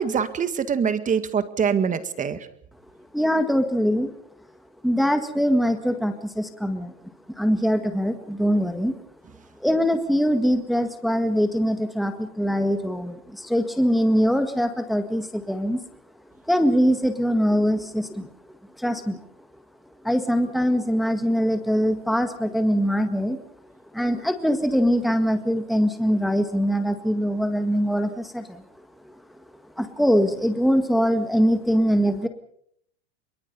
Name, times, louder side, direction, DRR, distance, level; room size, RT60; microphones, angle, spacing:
voice 1, 0.0-2.5, right 6 dB, 20° right, 12 dB, 1.9 m, -24 dB
voice 2, 3.1-4.1 4.8-6.9 7.4-8.9 9.6-15.8 16.5-18.3 18.8-19.2 20.0-23.4 23.9-28.6 29.8-32.3, equal, ahead, 7 dB, 1.8 m, -22 dB
24.5 x 23.5 x 5.4 m, 0.67 s
hypercardioid pair, 120°, 34 cm